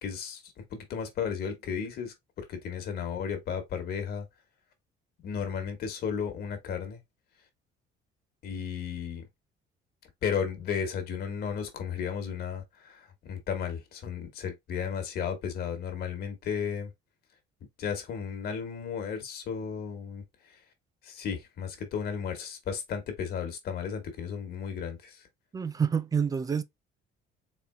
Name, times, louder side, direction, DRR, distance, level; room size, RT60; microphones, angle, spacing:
voice 1, 0.0-4.2 5.2-7.0 8.4-9.2 10.2-16.9 17.8-20.6 21.0-25.3, left 7 dB, 55° left, 1.5 m, -34 dB
voice 2, 25.5-26.6, right 6 dB, 20° right, 0.3 m, -27 dB
4.3 x 3.7 x 2.2 m
cardioid pair, 150°, 20 cm